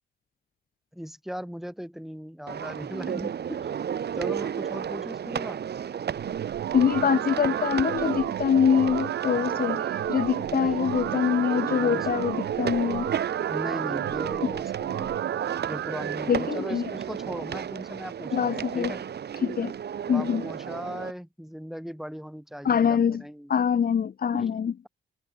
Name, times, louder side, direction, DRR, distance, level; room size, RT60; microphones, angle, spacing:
voice 1, 0.9-3.7 4.1-5.6 10.4-11.1 11.7-12.1 13.5-15.2 15.7-19.0 20.1-23.5 24.3-24.5, equal, ahead, 6.3 m, -38 dB
sound 1, 2.5-21.1, right 8 dB, 55° right, 4.8 m, -33 dB
sound 2, 6.2-16.2, right 12 dB, 70° right, 2.8 m, -32 dB
voice 2, 6.7-13.1 16.3-16.8 18.3-18.9 19.4-19.7 20.1-20.4 22.6-23.2 23.5-24.7, left 7 dB, 50° left, 2.5 m, -24 dB
cardioid pair, 90°, 20 cm